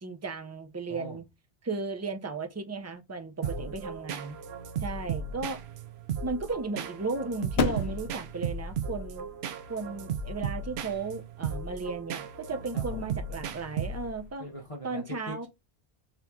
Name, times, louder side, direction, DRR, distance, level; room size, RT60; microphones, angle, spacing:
voice 1, 0.0-1.2 1.6-4.4 4.8-5.6 6.2-9.3 9.7-14.5 14.8-15.5, right 3 dB, 25° right, 0.3 m, -35 dB
voice 2, 3.4-3.8 12.7-13.1 14.4-15.5, right 1 dB, 30° left, 1.1 m, -42 dB
sound 1, 3.4-14.3, right 6 dB, 75° right, 0.8 m, -36 dB
sound 2, 5.2-12.2, left 6 dB, 70° left, 0.9 m, -38 dB
4.1 x 2.9 x 3.6 m
omnidirectional pair, 1.1 m